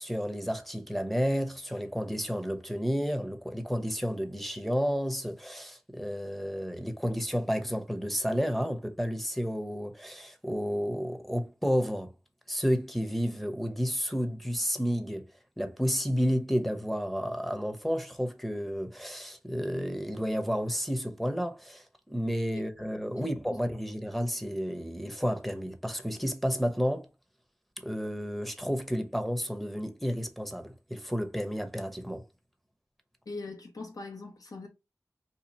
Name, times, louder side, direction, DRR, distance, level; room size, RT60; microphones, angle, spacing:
voice 1, 0.0-12.1 12.5-15.3 15.6-27.1 27.8-32.2, equal, ahead, 0.7 m, -31 dB
voice 2, 33.3-34.7, left 3 dB, 80° left, 1.1 m, -41 dB
2.8 x 2.4 x 4.0 m
wide cardioid pair, 40°, 6 cm